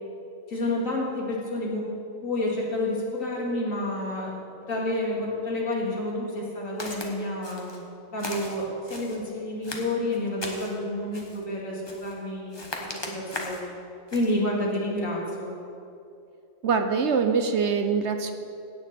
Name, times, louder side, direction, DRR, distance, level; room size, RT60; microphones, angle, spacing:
voice 1, 0.5-1.9 2.2-4.3 4.7-12.7 13.0-13.7 14.1-15.5, left 1 dB, 75° left, -3 dB, 2.9 m, -29 dB
Walk footsteps, 6.8-7.1 7.4-7.8 8.2-9.2 9.6-10.8 11.1-11.4 11.8-12.2 12.5-13.7 14.1-14.3, left 2 dB, 20° left, 1.2 m, -38 dB
voice 2, 16.6-18.3, right 5 dB, 60° right, 7 dB, 1.0 m, -24 dB
16.5 x 9.0 x 4.4 m, 2.6 s
omnidirectional pair, 1.4 m